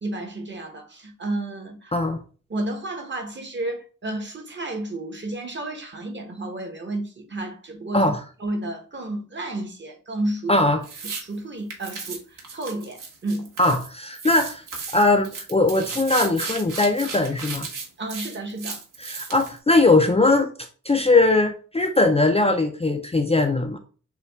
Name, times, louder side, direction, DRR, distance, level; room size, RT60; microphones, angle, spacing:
voice 1, 0.0-1.9 2.5-8.1 8.4-10.5 11.0-13.5 18.0-18.8, right 2 dB, 35° right, 1.0 m, -31 dB
voice 2, 10.5-10.8 13.6-14.6 14.9-17.7 19.0-20.5 20.8-23.8, left 2 dB, 20° left, 0.4 m, -20 dB
sound 1, 10.8-11.2 11.7-13.9 14.1-19.6, right 5 dB, 80° right, 1.3 m, -35 dB
6.7 x 2.3 x 3.4 m
wide cardioid pair, 150°, 32 cm